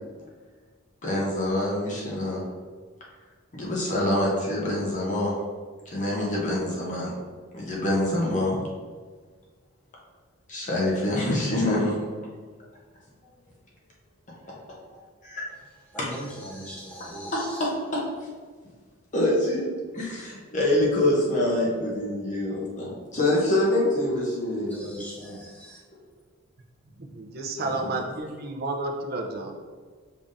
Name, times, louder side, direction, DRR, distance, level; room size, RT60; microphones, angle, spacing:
voice 1, 1.0-2.4 3.5-5.3 5.9-7.1 7.5-8.6 10.5-11.9 14.5-14.6 15.2-15.4 16.0-16.1 17.3-18.0 19.1-19.6 19.9-24.8 27.8-27.9, left 1 dB, 35° left, -4 dB, 0.9 m, -25 dB
voice 2, 15.9-17.7 24.7-25.8, equal, 5° left, -4 dB, 0.8 m, -39 dB
voice 3, 27.0-29.5, right 2 dB, 45° right, 2 dB, 0.6 m, -31 dB
5.4 x 3.5 x 2.6 m, 1.5 s
head